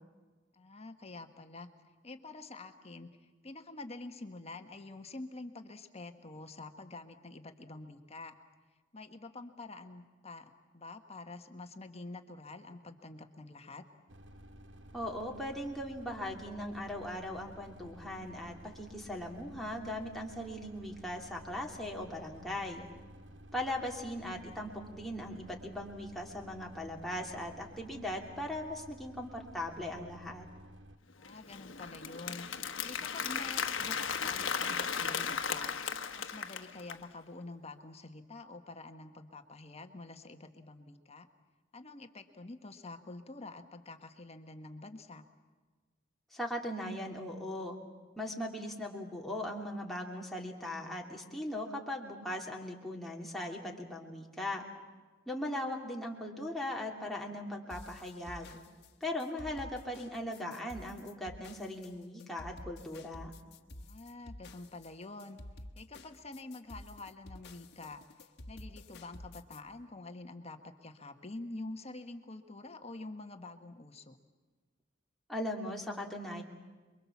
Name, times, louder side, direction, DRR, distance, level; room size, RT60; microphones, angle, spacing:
voice 1, 0.5-1.7 2.0-8.3 8.9-13.8 31.2-32.5 32.8-35.7 36.1-41.3 41.7-45.2 63.8-65.4 65.7-68.0 68.5-74.2, left 2 dB, 35° left, 7 dB, 1.4 m, -47 dB
sound 1, 14.1-31.0, right 1 dB, 65° right, 1.3 m, -53 dB
voice 2, 14.9-22.9 23.5-30.5 46.3-47.8 48.2-54.6 55.3-58.5 59.0-63.3 75.3-76.4, left 1 dB, ahead, -2 dB, 3.0 m, -39 dB
Applause, 31.2-37.0, left 6 dB, 75° left, 1.3 m, -36 dB
sound 2, 57.7-69.6, left 1 dB, 60° left, 1.5 m, -50 dB
28.0 x 23.0 x 7.2 m, 1.3 s
head